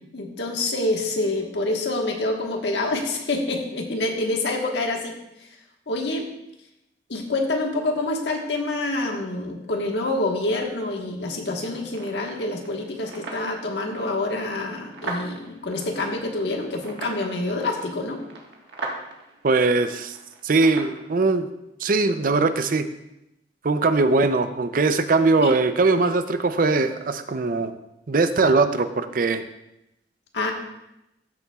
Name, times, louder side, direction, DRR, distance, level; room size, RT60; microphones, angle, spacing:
voice 1, 0.1-5.1 5.9-6.2 7.1-18.2 25.4-25.5 30.3-30.5, left 2 dB, 75° left, 2 dB, 1.4 m, -27 dB
sound 1, 11.9-21.0, right 2 dB, 70° right, 1.5 m, -40 dB
voice 2, 19.4-20.2 20.4-21.5 21.8-22.9 23.6-27.7 28.1-29.4, right 3 dB, 50° right, 10 dB, 0.5 m, -21 dB
13.5 x 7.0 x 2.4 m, 0.86 s
head